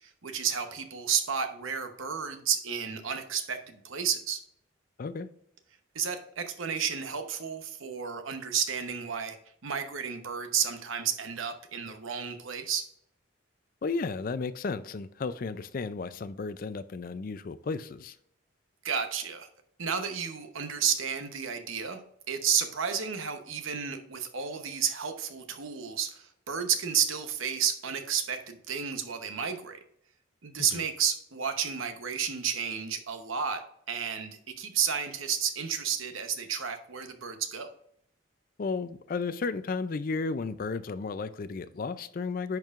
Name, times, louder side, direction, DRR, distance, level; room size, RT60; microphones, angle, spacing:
voice 1, 0.0-4.4 5.9-9.4 9.6-12.9 18.8-19.5 19.8-22.0 22.3-29.8 30.4-37.7, right 7 dB, 75° right, 7 dB, 0.9 m, -32 dB
voice 2, 13.8-18.2 30.7-30.8 38.6-42.6, left 4 dB, 45° left, 14 dB, 0.4 m, -33 dB
10.5 x 4.6 x 2.4 m, 0.71 s
head